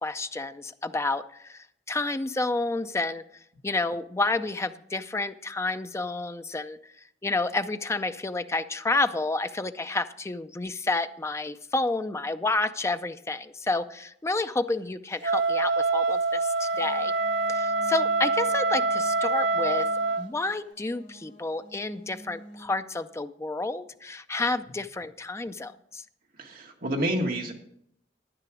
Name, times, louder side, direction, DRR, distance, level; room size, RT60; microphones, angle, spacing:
voice 1, 0.0-3.2 3.6-6.8 7.2-17.1 17.5-19.9 20.2-26.0, left 2 dB, 15° left, 10 dB, 0.4 m, -30 dB
Wind instrument woodwind instrument, 15.2-20.2, right 3 dB, 80° right, 0.6 m, -25 dB
sound 1, 16.7-22.7, right 1 dB, 45° left, 4.1 m, -49 dB
voice 2, 26.4-27.5, right 1 dB, 55° right, 1 dB, 1.8 m, -29 dB
10.5 x 9.8 x 4.9 m, 0.72 s
head